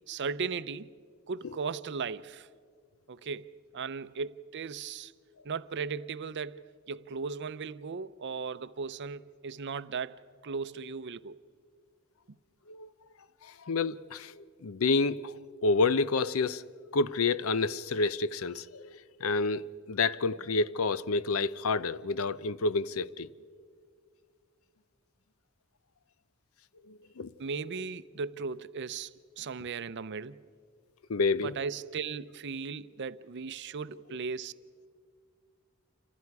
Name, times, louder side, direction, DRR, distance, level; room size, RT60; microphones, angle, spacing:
voice 1, 0.1-0.9 1.3-2.5 3.1-5.1 5.4-6.6 6.9-11.4 12.3-12.4 27.4-30.4 31.4-34.5, right 5 dB, 55° right, 0.6 m, -37 dB
voice 2, 13.4-15.3 15.6-16.6 16.9-18.9 19.2-23.3 26.9-27.3 31.1-31.5, left 3 dB, 75° left, 0.6 m, -29 dB
28.5 x 26.5 x 4.7 m
head